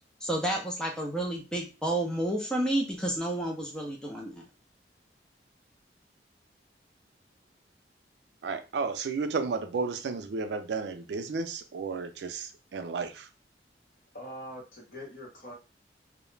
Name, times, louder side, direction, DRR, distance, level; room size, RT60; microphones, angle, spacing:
voice 1, 0.2-4.4, right 1 dB, 5° left, -1 dB, 0.4 m, -30 dB
voice 2, 8.4-13.3, right 4 dB, 75° right, 8 dB, 0.4 m, -33 dB
voice 3, 14.1-15.5, equal, 50° left, -2 dB, 0.9 m, -43 dB
2.2 x 2.0 x 3.1 m, 0.31 s
head